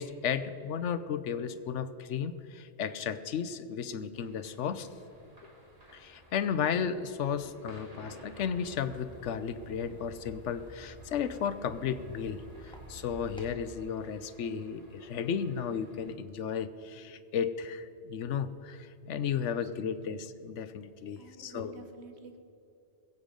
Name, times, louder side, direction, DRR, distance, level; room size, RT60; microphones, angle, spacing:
voice 1, 0.0-4.9 5.9-21.8, left 7 dB, 85° left, 13 dB, 1.0 m, -34 dB
sound 1, 4.1-16.1, equal, 35° right, 2.5 m, -56 dB
sound 2, 8.3-13.5, right 1 dB, 5° left, 1.9 m, -51 dB
voice 2, 19.4-20.2 21.2-22.4, right 3 dB, 65° right, 6 dB, 1.4 m, -51 dB
21.5 x 8.3 x 5.2 m, 2.8 s
omnidirectional pair, 1.2 m